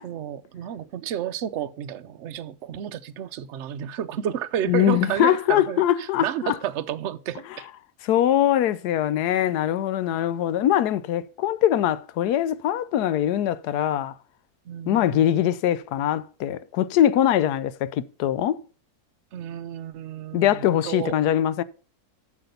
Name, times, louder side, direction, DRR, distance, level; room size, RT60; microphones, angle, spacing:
voice 1, 0.0-7.7 10.1-10.2 10.5-10.7 14.7-15.5 19.3-21.2, right 10 dB, 60° right, 0.8 m, -31 dB
voice 2, 4.7-6.5 8.0-14.1 14.9-18.6 20.3-21.6, left 11 dB, 85° left, 1.2 m, -22 dB
7.8 x 6.0 x 6.7 m
omnidirectional pair, 1.7 m